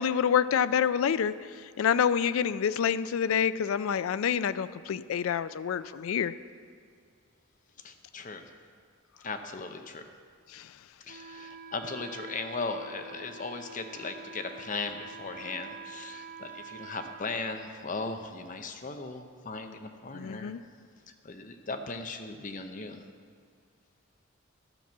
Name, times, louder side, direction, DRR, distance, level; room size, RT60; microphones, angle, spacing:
voice 1, 0.0-1.3 1.8-6.3 10.5-10.6 20.1-20.6, left 8 dB, 85° left, 15 dB, 0.3 m, -27 dB
voice 2, 7.8-8.5 9.2-10.0 11.1-20.5 21.2-23.0, left 3 dB, 40° left, 6 dB, 0.6 m, -37 dB
Wind instrument woodwind instrument, 11.1-17.2, right 4 dB, 40° right, 0.5 m, -46 dB
12.0 x 5.9 x 7.2 m, 2.1 s
head